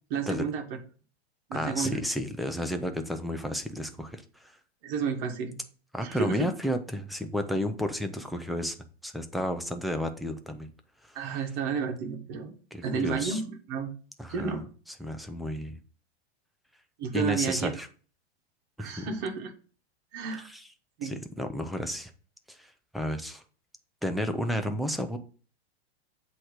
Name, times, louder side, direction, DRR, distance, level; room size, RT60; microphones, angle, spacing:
voice 1, 0.1-0.6 1.5-2.0 4.8-5.6 6.0-6.5 11.1-12.5 12.8-13.9 14.3-14.6 17.0-17.7 18.8-19.5 20.1-20.5 21.0-21.1, right 6 dB, 55° right, 5 dB, 1.5 m, -31 dB
voice 2, 1.5-4.5 5.9-8.8 9.0-10.7 11.1-11.2 12.7-13.4 14.2-14.6 15.0-15.8 17.1-17.9 18.8-19.1 20.4-20.7 21.0-22.1 22.5-23.4 24.0-25.2, equal, ahead, 7 dB, 0.5 m, -32 dB
7.8 x 3.1 x 4.9 m, 0.38 s
hypercardioid pair, 120°, 32 cm